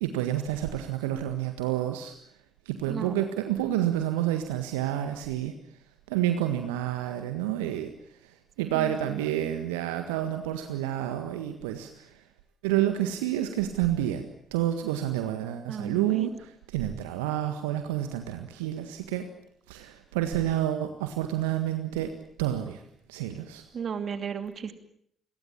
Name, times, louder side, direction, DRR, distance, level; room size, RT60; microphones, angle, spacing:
voice 1, 0.0-2.1 2.7-5.6 6.1-7.9 8.6-12.1 12.6-14.3 14.5-19.3 19.7-22.1 22.4-22.8 23.1-23.6, right 12 dB, 75° right, 7 dB, 1.6 m, -29 dB
voice 2, 8.7-9.2 15.7-16.3 23.7-24.7, right 6 dB, 45° right, 8 dB, 2.7 m, -34 dB
28.5 x 22.0 x 7.3 m, 0.69 s
figure-of-eight pair, 45°, 0 cm